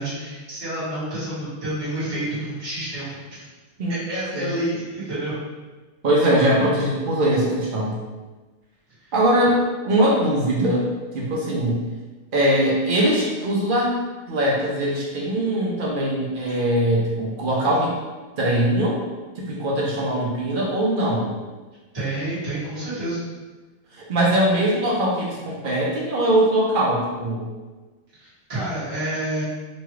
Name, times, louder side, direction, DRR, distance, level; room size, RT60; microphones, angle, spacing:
voice 1, 0.0-3.2 3.9-5.3 21.9-23.2 28.2-29.4, right 1 dB, 20° right, -13 dB, 1.2 m, -29 dB
voice 2, 6.0-8.0 9.1-10.9 11.1-11.8 12.3-14.0 14.3-17.9 18.4-19.0 19.4-21.3 23.9-27.5, right 1 dB, 60° right, -4 dB, 0.5 m, -21 dB
2.9 x 2.3 x 3.0 m, 1.3 s
omnidirectional pair, 1.5 m